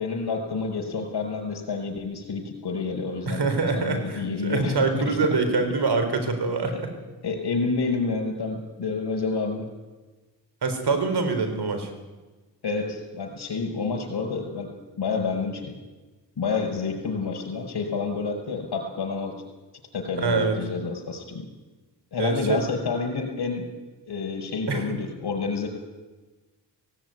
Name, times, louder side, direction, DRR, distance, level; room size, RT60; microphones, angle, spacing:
voice 1, 0.0-3.4 3.7-5.2 6.7-6.9 7.2-9.7 12.6-14.7 15.0-15.8 16.4-19.3 19.9-21.4 22.1-23.7 24.1-25.7, left 4 dB, 65° left, 3 dB, 6.1 m, -29 dB
voice 2, 3.3-6.9 10.6-11.9 20.2-20.6 22.2-22.6 24.7-24.9, right 4 dB, 65° right, 7 dB, 4.3 m, -25 dB
17.5 x 17.0 x 9.5 m, 1.2 s
cardioid pair, 70°, 43 cm